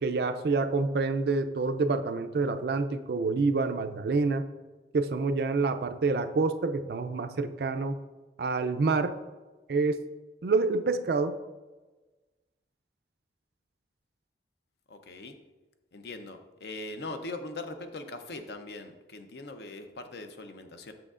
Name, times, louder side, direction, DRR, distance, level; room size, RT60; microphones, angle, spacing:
voice 1, 0.0-4.4 4.9-8.0 8.4-9.1 9.7-10.0 10.4-11.4, right 3 dB, 60° right, 9 dB, 0.4 m, -27 dB
voice 2, 14.9-15.4 15.9-20.9, left 2 dB, 65° left, 7 dB, 0.6 m, -41 dB
7.7 x 6.3 x 2.4 m, 1.2 s
head